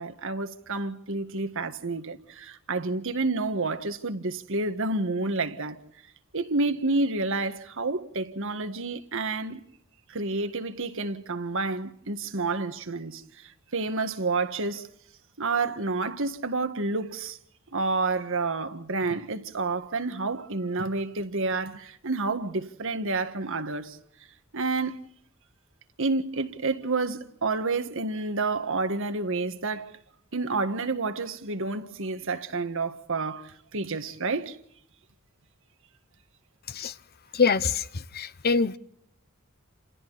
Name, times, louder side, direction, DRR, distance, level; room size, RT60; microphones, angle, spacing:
voice 1, 0.0-5.8 6.3-9.6 10.1-13.2 13.7-14.9 15.4-17.4 17.7-24.0 24.5-25.0 26.0-29.9 30.3-34.6, right 3 dB, 65° right, 1.7 m, -29 dB
voice 2, 37.3-37.8 38.1-38.8, left 5 dB, 45° left, 0.9 m, -24 dB
29.0 x 28.0 x 4.1 m
head